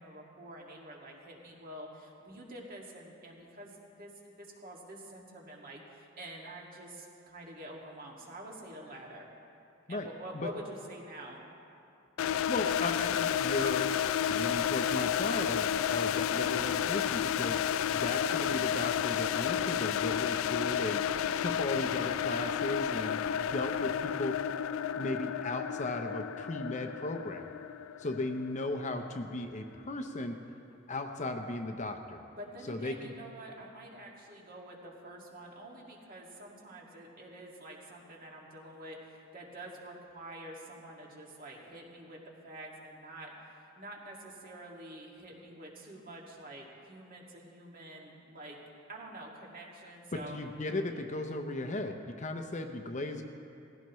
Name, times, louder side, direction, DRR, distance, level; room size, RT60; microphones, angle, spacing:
voice 1, 0.0-9.3 9.9-11.4 32.3-48.6 48.9-50.4, right 1 dB, 45° right, -2 dB, 2.2 m, -47 dB
sound 1, 12.2-29.0, left 9 dB, 75° left, 0.3 m, -31 dB
voice 2, 12.5-13.9 14.3-17.6 17.9-21.0 21.4-24.3 24.9-27.5 28.0-30.4 30.9-32.2 32.7-33.1 50.1-53.2, left 2 dB, 35° left, 5 dB, 0.7 m, -36 dB
18.5 x 15.5 x 3.1 m, 2.7 s
head